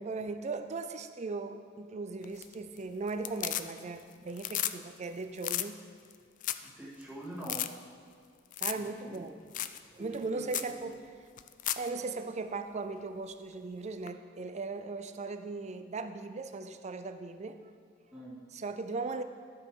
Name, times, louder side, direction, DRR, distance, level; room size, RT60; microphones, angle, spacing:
voice 1, 0.0-5.8 8.6-9.4 9.9-11.1 11.8-17.6 18.5-19.2, right 3 dB, 35° right, 9 dB, 0.4 m, -38 dB
sound 1, 2.2-2.8 3.1-4.0 4.3-4.8 5.0-5.1 5.4-5.7 6.1-6.2 6.4-6.7 7.0-7.1 7.4-7.7 8.5-8.9 9.1-9.2 9.5-9.8 10.1-10.2 10.5-10.7 11.4-11.9 14.1-14.2, left 13 dB, 40° left, 0.3 m, -34 dB
voice 2, 6.6-7.6 9.0-9.2 10.2-10.9 18.1-18.4, right 1 dB, 10° right, -7 dB, 2.0 m, -44 dB
12.5 x 5.3 x 4.7 m, 2.2 s
head